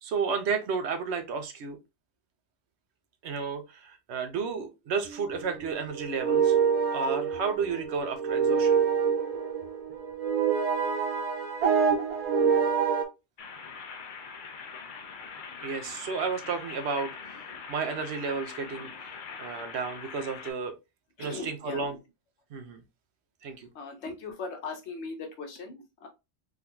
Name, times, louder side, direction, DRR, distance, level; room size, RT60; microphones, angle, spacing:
voice 1, 0.0-1.8 3.2-6.6 6.9-8.7 15.6-17.3 17.7-19.1 19.4-20.7 21.2-22.0 22.5-22.8 23.4-23.7, right 5 dB, 80° right, 0.9 m, -32 dB
sound 1, 5.1-13.0, right 6 dB, 55° right, 0.4 m, -26 dB
sound 2, 13.4-20.5, left 5 dB, 55° left, 0.7 m, -42 dB
voice 2, 21.2-22.0 23.7-26.1, left 4 dB, 90° left, 1.1 m, -39 dB
3.6 x 2.8 x 2.3 m
omnidirectional pair, 1.1 m